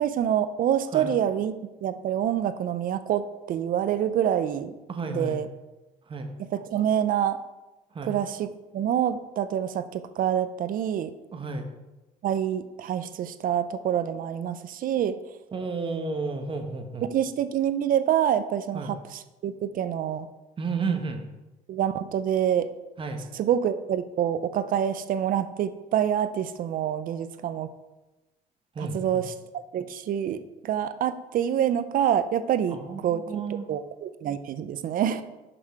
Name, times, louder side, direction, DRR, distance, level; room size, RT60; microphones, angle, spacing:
voice 1, 0.0-4.7 5.1-5.5 6.5-7.4 8.1-8.5 8.7-11.1 12.2-15.2 17.0-20.3 21.7-22.7 23.3-27.7 28.8-29.3 29.7-33.4 33.7-35.2, right 9 dB, 55° right, 12 dB, 0.5 m, -26 dB
voice 2, 4.9-5.4 6.1-6.3 7.9-8.1 11.3-11.7 15.5-17.1 18.7-18.9 20.6-21.3 23.0-23.2 28.7-29.2 32.7-33.7, right 4 dB, 30° right, 5 dB, 1.0 m, -32 dB
6.3 x 5.9 x 4.8 m, 1.1 s
cardioid pair, 110°, 17 cm